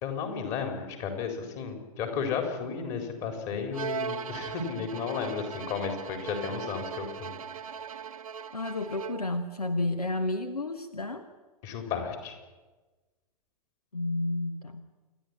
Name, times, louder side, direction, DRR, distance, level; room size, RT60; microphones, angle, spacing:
voice 1, 0.0-7.3 11.6-12.4, left 6 dB, 40° left, 5 dB, 4.3 m, -33 dB
Bowed string instrument, 3.7-9.4, right 6 dB, 65° right, 0.9 m, -39 dB
voice 2, 8.5-11.3 13.9-14.8, left 2 dB, 80° left, 10 dB, 1.3 m, -31 dB
28.0 x 11.5 x 9.9 m, 1.3 s
figure-of-eight pair, 100°, 19 cm